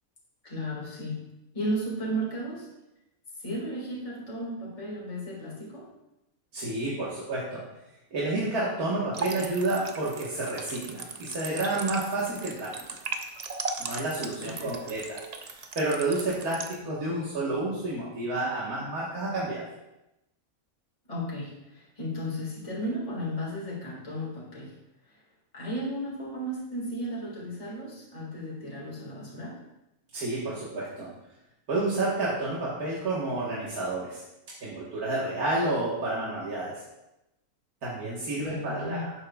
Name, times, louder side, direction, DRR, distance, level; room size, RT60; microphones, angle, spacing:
voice 1, 0.4-1.2 1.5-2.7 3.4-5.9 14.4-14.7 21.1-24.7 25.1-25.2 25.5-29.6 38.4-39.1, equal, 25° left, -5 dB, 2.1 m, -34 dB
voice 2, 6.5-7.6 8.1-12.8 13.8-19.6 30.1-31.1 31.7-34.2 34.6-36.8 37.8-39.1, right 2 dB, 90° right, -7 dB, 2.0 m, -30 dB
sound 1, 9.1-16.8, right 4 dB, 60° right, 0.4 m, -38 dB
11.0 x 7.6 x 2.4 m, 0.92 s
omnidirectional pair, 1.5 m